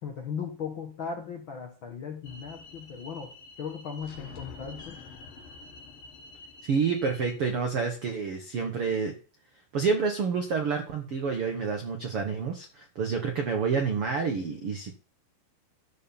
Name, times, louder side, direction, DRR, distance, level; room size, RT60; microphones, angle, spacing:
voice 1, 0.0-3.3 3.6-5.0, left 6 dB, 75° left, 1 dB, 1.1 m, -37 dB
sound 1, 2.2-7.4, left 3 dB, 55° left, 1.7 m, -47 dB
voice 2, 6.6-9.1 9.7-14.9, right 5 dB, 75° right, 4 dB, 1.3 m, -28 dB
12.5 x 4.5 x 7.1 m, 0.38 s
omnidirectional pair, 4.6 m